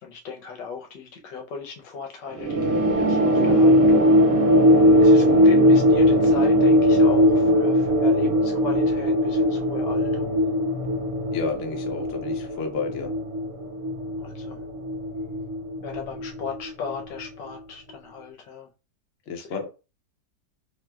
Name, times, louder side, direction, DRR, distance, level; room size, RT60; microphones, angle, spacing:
voice 1, 0.0-4.1 5.0-10.3 14.2-14.6 15.8-18.7 19.4-19.7, left 4 dB, 80° left, 1.4 m, -36 dB
sound 1, 2.4-17.3, equal, 25° right, 1.1 m, -20 dB
voice 2, 11.3-13.1 19.3-19.7, left 4 dB, 60° left, 0.7 m, -31 dB
3.8 x 2.5 x 2.2 m
omnidirectional pair, 1.9 m